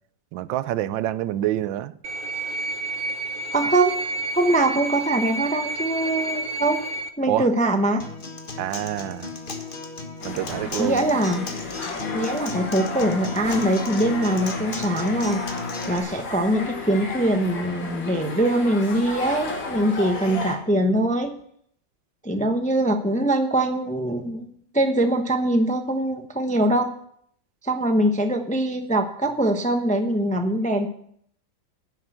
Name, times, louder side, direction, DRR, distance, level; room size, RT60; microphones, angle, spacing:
voice 1, 0.3-2.0 7.3-7.5 8.6-9.3 10.2-11.0, right 13 dB, 85° right, 1.3 m, -27 dB
sound 1, 2.0-7.1, right 2 dB, 40° right, 0.8 m, -30 dB
voice 2, 3.5-3.9 4.3-6.8 7.2-8.0 10.8-11.5 12.1-15.4 15.9-21.3 22.2-26.9 27.6-30.9, right 1 dB, 5° left, 0.5 m, -22 dB
Acoustic guitar, 8.0-16.0, left 4 dB, 30° left, 1.4 m, -34 dB
sound 2, 10.2-20.5, left 3 dB, 85° left, 2.6 m, -34 dB
10.5 x 7.8 x 7.7 m
omnidirectional pair, 2.0 m